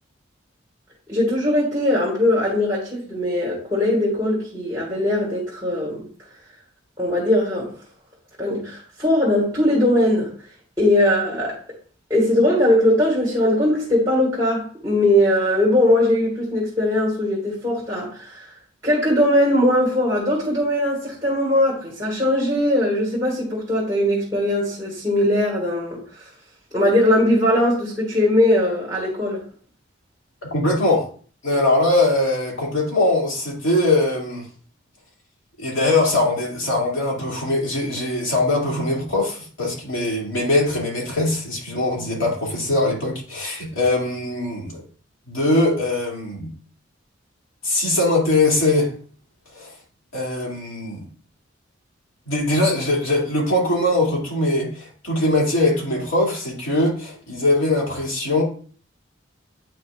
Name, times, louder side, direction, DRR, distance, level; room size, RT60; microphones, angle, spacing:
voice 1, 1.1-6.0 7.0-7.7 8.4-10.3 10.8-11.6 12.1-18.5 18.8-26.2 26.7-29.4, left 1 dB, 15° right, 2.1 m, -20 dB
voice 2, 30.4-31.1 31.4-34.5 35.6-44.8 45.3-46.5 47.6-48.9 49.5-49.7 50.1-51.1 52.3-58.4, left 2 dB, 80° left, 2.6 m, -21 dB
8.8 x 5.6 x 2.4 m
head